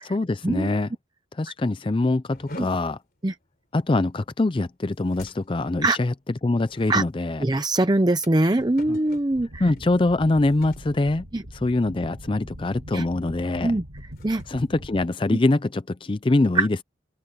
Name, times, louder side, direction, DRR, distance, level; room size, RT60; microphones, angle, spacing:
voice 1, 0.1-0.9 1.3-3.0 3.7-6.1 6.4-7.4 8.9-9.0 9.6-11.2 11.5-13.7 14.5-16.8, left 2 dB, 25° left, 0.4 m, -24 dB
sound 1, 2.3-12.0 12.2-12.6 13.0-13.2 13.8-15.7, left 1 dB, 50° left, 3.4 m, -48 dB
voice 2, 7.4-9.6 11.3-11.4 12.9-13.0 13.6-13.8 14.2-14.4 15.3-15.4 16.5-16.7, right 2 dB, 20° right, 0.6 m, -22 dB
sound 2, 9.3-15.0, equal, 85° right, 7.3 m, -42 dB
open air
head